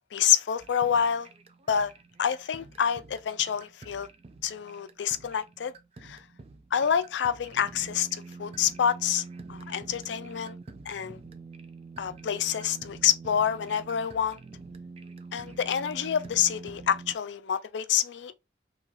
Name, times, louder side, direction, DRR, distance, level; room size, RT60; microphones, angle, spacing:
voice 1, 0.1-1.3 1.7-1.9 2.2-4.1 4.4-5.7 6.0-6.2 6.7-10.6 10.9-11.2 12.0-14.4 15.3-18.3, left 8 dB, 90° left, 0.4 m, -27 dB
sound 1, 0.6-17.2, right 4 dB, 35° right, 0.4 m, -46 dB
3.1 x 2.3 x 3.7 m
head